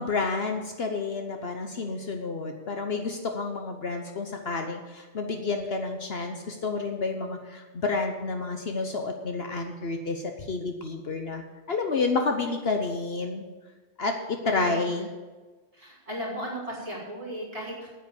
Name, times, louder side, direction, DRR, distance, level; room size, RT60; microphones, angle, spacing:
voice 1, 0.0-11.4 11.7-13.4 14.0-15.1, left 3 dB, 55° left, 4 dB, 1.1 m, -30 dB
voice 2, 14.4-14.8 15.7-17.9, right 1 dB, 30° right, -6 dB, 4.3 m, -35 dB
9.4 x 9.3 x 7.0 m, 1.3 s
omnidirectional pair, 1.3 m